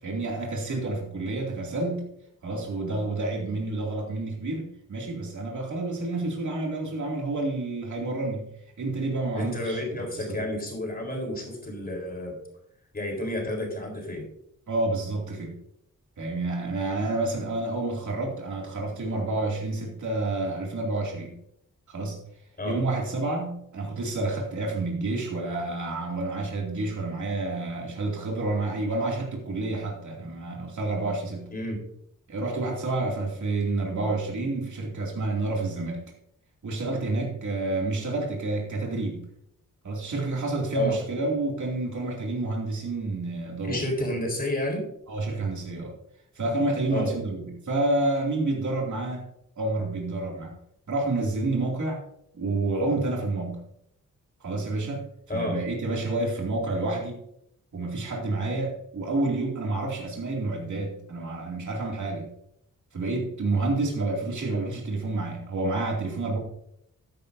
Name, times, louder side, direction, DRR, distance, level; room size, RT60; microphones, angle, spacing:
voice 1, 0.0-2.1 2.4-8.5 8.8-9.8 10.2-10.4 14.7-15.6 16.2-21.4 21.9-22.2 22.7-31.5 32.3-36.0 36.6-39.3 39.8-43.8 45.1-45.9 46.3-49.3 49.6-50.6 50.9-52.0 52.3-53.6 54.4-57.2 57.7-62.3 62.9-66.4, right 2 dB, 65° right, -1 dB, 2.7 m, -29 dB
voice 2, 9.4-12.4 12.9-14.3 17.0-17.1 22.6-22.8 31.5-31.8 40.7-41.0 43.6-44.9 46.9-47.1 55.3-55.6, left 1 dB, 30° left, 1 dB, 3.9 m, -30 dB
13.5 x 11.0 x 2.7 m, 0.75 s
wide cardioid pair, 115°, 32 cm